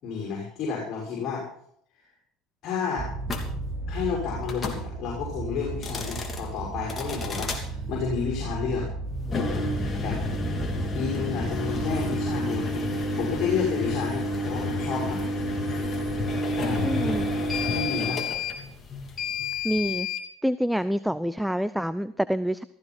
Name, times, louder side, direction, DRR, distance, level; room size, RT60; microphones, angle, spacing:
voice 1, 0.0-1.5 2.6-3.1 3.9-8.9 10.0-10.2 10.9-15.3 16.6-16.9 17.7-18.2, left 6 dB, 55° left, -4 dB, 5.6 m, -31 dB
sound 1, 3.0-13.2, right 3 dB, 40° right, 1.5 m, -35 dB
sound 2, 3.3-3.5 4.4-4.8 5.7-6.4 6.9-7.6 9.2-20.2, left 2 dB, 30° left, 3.0 m, -29 dB
voice 2, 16.8-17.3 19.6-20.1 20.4-22.6, equal, ahead, 15 dB, 0.5 m, -27 dB
15.0 x 15.0 x 4.4 m, 0.68 s
supercardioid pair, 95°, 0 cm